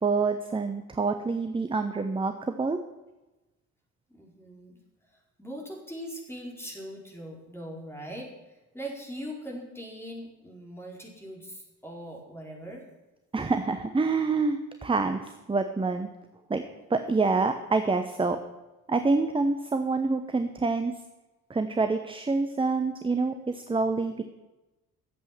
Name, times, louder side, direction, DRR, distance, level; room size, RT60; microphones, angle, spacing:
voice 1, 0.0-2.8 13.3-16.1 16.5-16.6 16.9-18.4 18.9-20.9 21.5-24.2, right 3 dB, 10° right, 7 dB, 0.9 m, -27 dB
voice 2, 4.1-4.8 5.1-12.8, equal, 5° left, -1 dB, 4.5 m, -41 dB
13.0 x 8.0 x 7.5 m, 1.0 s
figure-of-eight pair, 50°, 43 cm